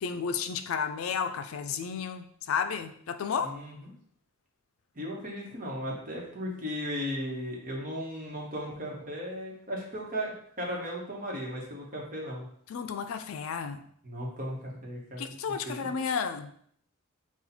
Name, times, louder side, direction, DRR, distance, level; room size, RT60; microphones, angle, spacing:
voice 1, 0.0-3.6 12.7-13.8 15.2-16.5, left 6 dB, 75° left, 8 dB, 0.4 m, -32 dB
voice 2, 3.4-3.9 4.9-12.5 14.0-15.3 15.6-15.9, equal, 40° right, -2 dB, 1.1 m, -36 dB
4.2 x 2.4 x 4.1 m, 0.64 s
head